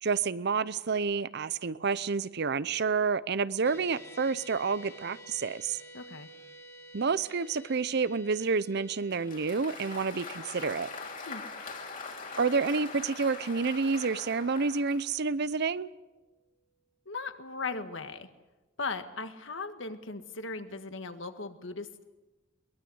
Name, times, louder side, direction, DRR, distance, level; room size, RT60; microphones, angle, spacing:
voice 1, 0.0-5.8 6.9-10.9 12.4-15.9, right 4 dB, 55° right, 17 dB, 0.7 m, -29 dB
sound 1, 3.6-16.0, right 1 dB, 15° left, 2.2 m, -53 dB
voice 2, 5.9-6.3 11.3-11.4 17.1-18.3 18.8-22.0, left 3 dB, 70° left, 8 dB, 1.7 m, -38 dB
Applause, 9.1-15.1, left 4 dB, 45° left, 3.2 m, -42 dB
22.5 x 20.5 x 8.0 m, 1.1 s
head